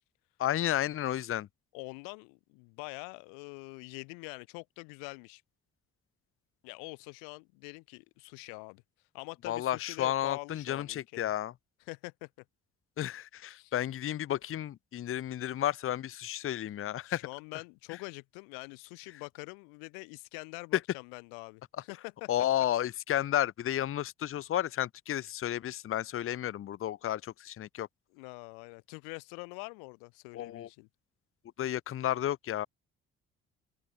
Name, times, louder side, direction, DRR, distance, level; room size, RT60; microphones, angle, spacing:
voice 1, 0.4-1.5 9.5-11.5 13.0-17.3 20.7-20.8 22.3-27.9 30.3-30.7 31.6-32.7, left 12 dB, 40° left, 0.5 m, -32 dB
voice 2, 1.7-5.4 6.6-8.8 9.1-11.3 11.9-12.3 13.5-13.7 17.0-22.3 22.6-22.7 28.1-30.9, left 39 dB, 90° left, 0.6 m, -45 dB
open air
supercardioid pair, 55°, 32 cm